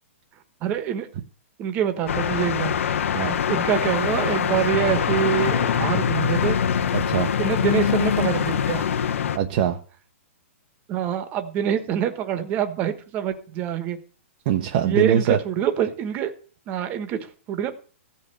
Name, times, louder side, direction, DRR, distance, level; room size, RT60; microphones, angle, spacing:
voice 1, 0.6-1.1 1.6-2.7 3.5-6.6 7.4-8.8 10.9-14.0 14.8-16.3 16.7-17.7, right 9 dB, 25° right, 9 dB, 1.4 m, -25 dB
sound 1, 2.1-9.4, left 8 dB, 75° left, 1.2 m, -23 dB
voice 2, 6.9-7.3 9.3-9.8 14.5-15.4, right 9 dB, 40° right, 5 dB, 0.9 m, -22 dB
15.0 x 5.5 x 8.2 m, 0.41 s
hypercardioid pair, 165°, 7 cm